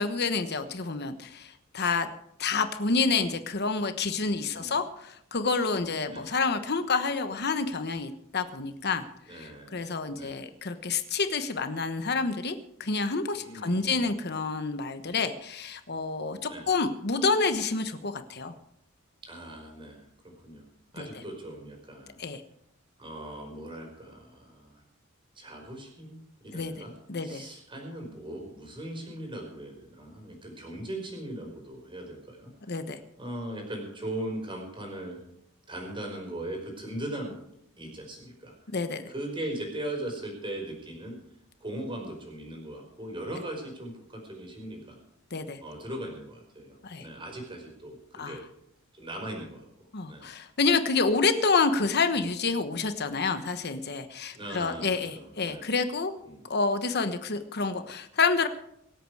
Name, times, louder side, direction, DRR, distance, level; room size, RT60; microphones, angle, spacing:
voice 1, 0.0-2.1 2.4-9.0 9.3-18.5 21.0-21.1 22.2-22.4 26.5-26.7 27.1-27.4 32.7-33.0 38.7-39.1 45.3-45.6 46.8-47.1 48.1-48.4 49.9-56.1 56.5-58.5, left 4 dB, 55° left, 9 dB, 1.2 m, -28 dB
voice 2, 4.5-4.8 6.1-6.3 9.3-9.8 10.1-10.4 13.4-14.1 16.5-16.7 19.2-20.7 20.9-22.2 23.0-24.8 25.3-26.9 27.2-32.5 33.2-35.2 35.7-37.3 37.8-38.5 39.1-41.2 41.6-45.0 45.6-48.4 48.9-49.6 50.1-50.3 54.3-55.7 56.2-56.4, right 1 dB, 25° right, 1 dB, 5.1 m, -39 dB
24.5 x 8.5 x 4.9 m, 0.75 s
head